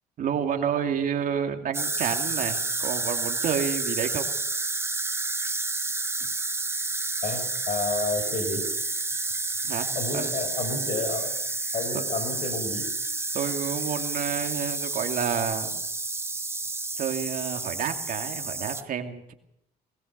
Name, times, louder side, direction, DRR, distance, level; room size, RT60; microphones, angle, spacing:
voice 1, 0.2-4.2 9.6-9.9 10.1-10.3 11.9-12.0 13.3-15.8 17.0-19.3, right 8 dB, 55° right, 5 dB, 2.5 m, -29 dB
sound 1, 1.7-18.8, right 3 dB, 15° right, 1.1 m, -30 dB
voice 2, 7.2-9.3 9.9-11.3 11.7-12.9, left 3 dB, 45° left, 8 dB, 5.6 m, -31 dB
21.5 x 20.0 x 6.7 m, 0.75 s
cardioid pair, 110°, 17 cm